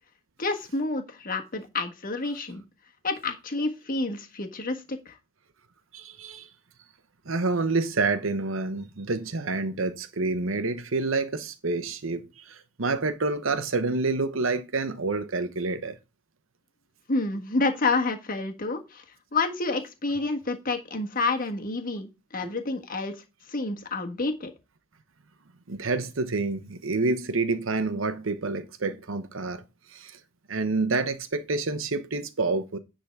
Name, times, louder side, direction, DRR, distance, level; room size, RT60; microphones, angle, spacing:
voice 1, 0.4-2.6 3.0-5.2 17.1-19.0 19.3-23.2 23.5-24.5, left 3 dB, 45° left, 1.5 m, -29 dB
voice 2, 5.9-6.5 7.3-16.0 25.7-29.6 29.9-30.1 30.5-32.8, right 3 dB, 70° right, 1.0 m, -28 dB
10.0 x 3.9 x 5.9 m
head